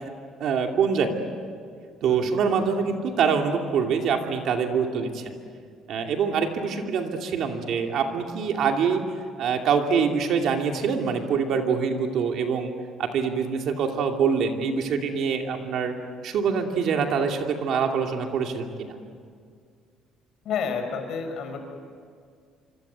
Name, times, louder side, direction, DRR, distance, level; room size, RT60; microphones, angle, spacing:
voice 1, 0.4-1.2 2.0-5.3 5.9-9.0 9.4-12.7 13.0-15.9 16.2-18.9, right 6 dB, 50° right, 3 dB, 2.6 m, -25 dB
voice 2, 2.1-2.4 20.4-21.6, left 6 dB, 50° left, 6 dB, 4.8 m, -30 dB
26.5 x 26.0 x 8.2 m, 2.1 s
cardioid pair, 180°, 0 cm